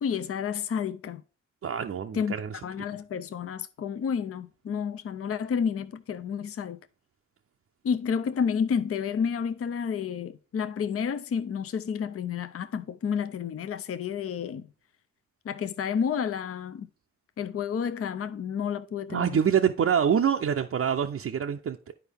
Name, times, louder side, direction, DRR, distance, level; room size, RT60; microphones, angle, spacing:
voice 1, 0.0-1.2 2.1-2.3 2.6-6.8 7.8-14.7 15.4-16.9 17.4-19.4, left 7 dB, 50° left, 0.6 m, -30 dB
voice 2, 1.6-2.6 19.1-21.9, right 8 dB, 50° right, 0.5 m, -26 dB
9.9 x 4.6 x 3.4 m
cardioid pair, 60°, 31 cm